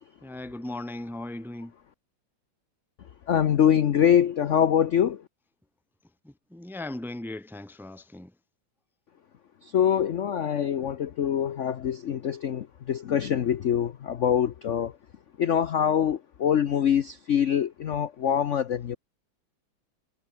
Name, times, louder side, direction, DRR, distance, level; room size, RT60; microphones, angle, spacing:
voice 1, 0.2-1.7 6.2-8.3, left 1 dB, ahead, 0.9 m, -38 dB
voice 2, 3.3-5.2 9.6-14.9 15.4-19.0, left 9 dB, 60° left, 0.8 m, -24 dB
omnidirectional pair, 2.1 m